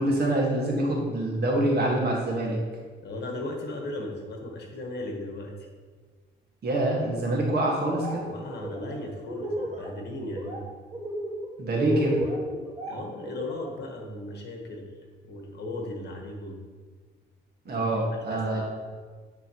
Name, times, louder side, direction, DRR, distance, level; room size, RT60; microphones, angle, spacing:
voice 1, 0.0-2.6 6.6-8.2 11.6-12.3 17.6-18.6, right 1 dB, 55° right, -2 dB, 1.7 m, -25 dB
voice 2, 3.0-5.5 8.2-10.6 12.9-14.9 15.2-16.6 17.6-18.6, left 2 dB, 60° left, 1 dB, 1.3 m, -37 dB
Laughter, 7.7-8.2 8.5-9.9 10.2-10.6 10.9-13.8, right 1 dB, 35° right, 1.7 m, -33 dB
9.6 x 3.8 x 3.0 m, 1.5 s
cardioid pair, 90°, 20 cm